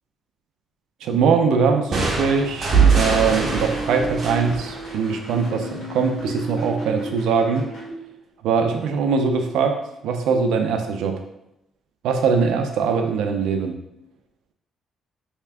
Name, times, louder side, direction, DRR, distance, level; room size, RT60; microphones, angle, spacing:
voice 1, 1.0-7.7 8.4-9.8 10.0-11.2 12.0-13.7, right 5 dB, 85° right, 5 dB, 0.5 m, -21 dB
sound 1, 1.9-5.6, right 5 dB, 50° right, 0.8 m, -22 dB
sound 2, 2.7-7.9, equal, 60° left, 1.4 m, -33 dB
3.3 x 2.8 x 3.4 m, 0.84 s
cardioid pair, 90°, 0 cm